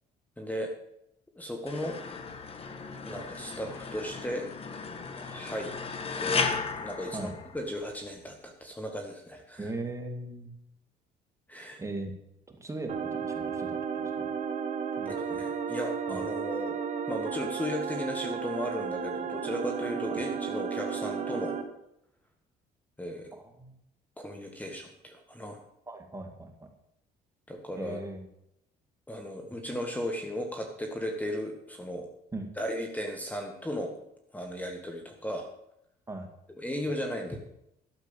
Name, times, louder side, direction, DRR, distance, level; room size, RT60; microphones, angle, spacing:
voice 1, 0.4-0.7 1.4-2.0 3.1-4.5 5.2-5.7 6.2-9.7 11.5-11.8 15.2-16.8 17.1-21.6 23.0-23.3 24.2-25.6 27.5-28.0 29.1-32.1 32.6-34.0 34.3-35.5 36.6-37.4, equal, 10° left, 3 dB, 1.8 m, -36 dB
sound 1, 1.7-7.9, left 5 dB, 35° left, 1.5 m, -35 dB
voice 2, 9.6-10.5 11.8-12.1 12.6-13.8 14.0-14.3 15.0-15.5 16.1-16.2 20.1-20.2 23.6-23.8 25.9-26.7 27.8-28.2 32.3-32.5 36.1-36.3, right 2 dB, 15° right, 4 dB, 2.4 m, -39 dB
sound 2, 12.9-21.6, right 6 dB, 45° right, 1.6 m, -33 dB
12.5 x 7.4 x 7.2 m, 0.79 s
cardioid pair, 110°, 17 cm